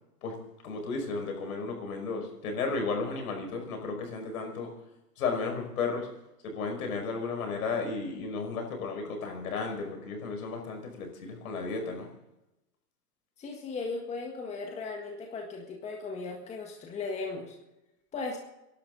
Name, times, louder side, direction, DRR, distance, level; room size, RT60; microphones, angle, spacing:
voice 1, 0.6-4.7 5.2-6.1 6.4-12.1, left 4 dB, 65° left, 3 dB, 5.4 m, -33 dB
voice 2, 13.4-17.6 18.1-18.4, left 3 dB, 15° left, 1 dB, 1.7 m, -37 dB
27.5 x 11.5 x 3.9 m, 0.92 s
hypercardioid pair, 140°, 47 cm